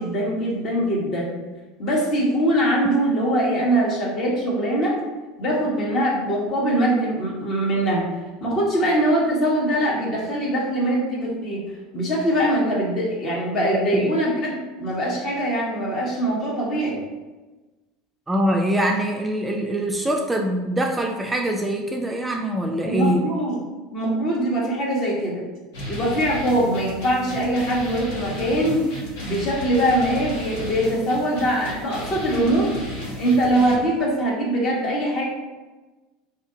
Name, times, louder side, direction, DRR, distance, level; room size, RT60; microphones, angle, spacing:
voice 1, 0.0-1.3 1.8-5.0 5.4-8.0 8.4-11.6 11.9-17.0 22.8-23.6 23.9-25.5 25.9-28.9 29.2-32.7 33.2-35.2, right 1 dB, 45° left, -3 dB, 1.2 m, -22 dB
voice 2, 18.3-23.2, right 1 dB, 10° right, 2 dB, 0.4 m, -23 dB
sound 1, 25.7-33.8, left 1 dB, 70° left, 0.9 m, -34 dB
2.7 x 2.5 x 3.8 m, 1.2 s
hypercardioid pair, 75°, 0 cm